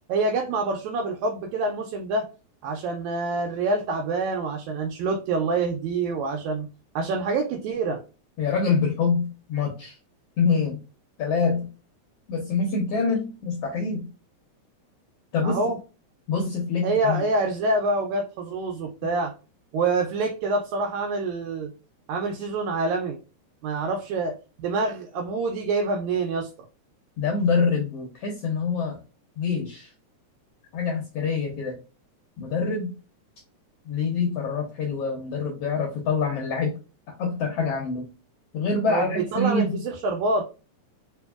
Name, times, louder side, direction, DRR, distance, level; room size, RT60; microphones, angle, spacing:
voice 1, 0.1-2.3 2.6-6.7 7.0-8.0 15.4-15.8 16.8-19.3 19.7-21.7 22.1-23.2 23.6-24.4 24.6-26.5 38.9-40.4, right 3 dB, 80° right, 2 dB, 1.9 m, -26 dB
voice 2, 8.4-10.0 10.4-10.8 11.2-11.7 12.3-14.1 15.3-15.7 16.3-17.3 27.2-29.0 29.4-29.9 30.7-31.8 32.4-32.9 33.8-36.8 37.1-38.1 38.5-39.8, left 4 dB, 75° left, 1 dB, 1.4 m, -25 dB
4.5 x 2.7 x 2.3 m, 0.33 s
omnidirectional pair, 3.4 m